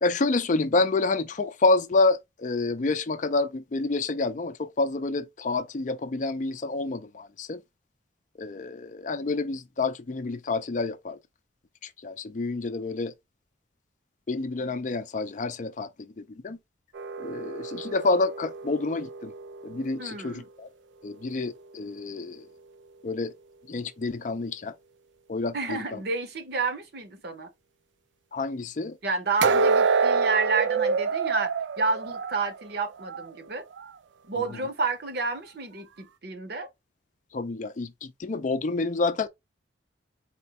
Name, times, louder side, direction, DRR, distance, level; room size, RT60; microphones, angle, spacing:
voice 1, 0.0-7.6 8.4-11.2 12.0-13.1 14.3-15.9 16.2-16.6 17.2-19.3 19.6-20.7 21.0-22.4 23.0-23.3 23.7-24.7 25.3-26.0 28.3-29.0 37.3-39.3, left 3 dB, 40° left, 0.4 m, -28 dB
sound 1, 16.9-20.1 29.4-33.3 33.7-33.9 34.5-34.6, right 5 dB, 75° right, 0.4 m, -27 dB
voice 2, 20.0-20.5 25.5-27.5 29.0-33.6 34.2-36.7, right 4 dB, 55° right, 0.9 m, -30 dB
4.3 x 2.1 x 4.0 m
head